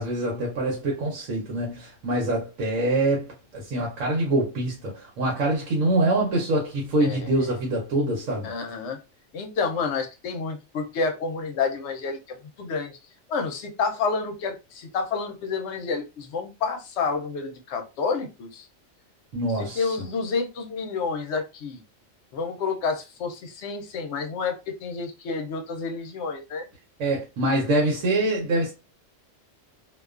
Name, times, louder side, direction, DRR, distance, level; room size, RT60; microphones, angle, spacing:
voice 1, 0.0-3.3 3.5-8.5 19.3-19.9 27.0-28.7, right 1 dB, 85° right, 1.1 m, -25 dB
voice 2, 7.0-7.5 8.4-9.0 9.3-13.0 13.3-18.7 19.5-21.8 22.3-26.7, left 4 dB, 70° left, 0.8 m, -29 dB
2.4 x 2.2 x 2.3 m
omnidirectional pair, 1.3 m